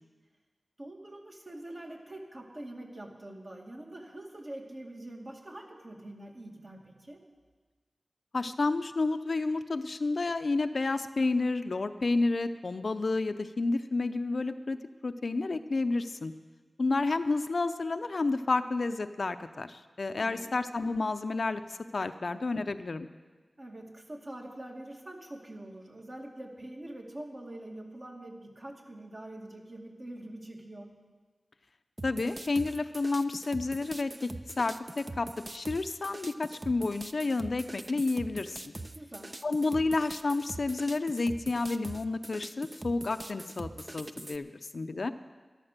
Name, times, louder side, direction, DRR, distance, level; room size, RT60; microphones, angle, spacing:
voice 1, 0.8-7.2 20.2-20.5 23.6-30.9 38.9-39.4, right 1 dB, 45° right, 0 dB, 2.3 m, -44 dB
voice 2, 8.3-14.8 15.0-16.3 16.8-23.1 32.0-34.3 34.6-38.7 39.4-45.1, left 3 dB, 65° left, 9 dB, 0.6 m, -30 dB
sound 1, 32.0-44.4, right 2 dB, 30° right, 0.6 m, -43 dB
13.5 x 11.5 x 6.7 m, 1.4 s
wide cardioid pair, 70°, 0 cm